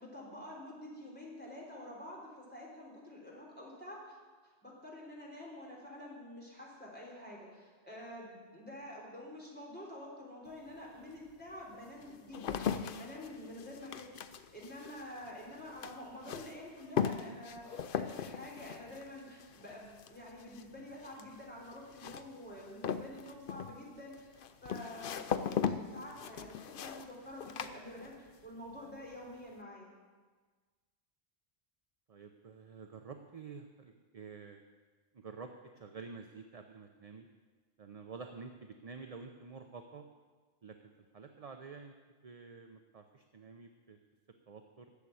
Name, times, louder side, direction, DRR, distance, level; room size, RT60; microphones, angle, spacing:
voice 1, 0.0-4.2 4.4-29.9, left 1 dB, 10° left, -4 dB, 3.4 m, -48 dB
sound 1, 10.5-10.6 11.3-28.5 28.7-29.3, left 7 dB, 60° left, 0.7 m, -39 dB
voice 2, 32.1-34.6 35.1-37.3 37.8-40.0 40.6-40.8 41.1-41.9 42.2-44.0 44.5-44.9, right 5 dB, 40° right, 5 dB, 0.7 m, -49 dB
12.0 x 7.6 x 8.3 m, 1.4 s
omnidirectional pair, 1.1 m